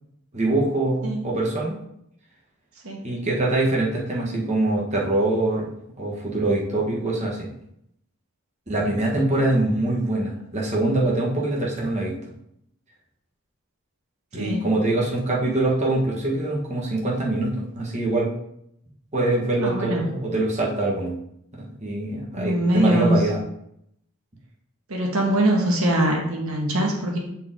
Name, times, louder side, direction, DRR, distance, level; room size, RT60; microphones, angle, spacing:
voice 1, 0.3-1.7 3.0-5.7 6.0-7.5 8.7-12.1 14.3-18.3 19.1-21.1 21.5-23.4, right 2 dB, 30° right, -4 dB, 1.4 m, -24 dB
voice 2, 14.4-14.7 19.6-20.0 22.3-23.2 24.9-27.2, right 1 dB, 70° right, -1 dB, 1.5 m, -22 dB
7.8 x 4.4 x 3.8 m, 0.76 s
head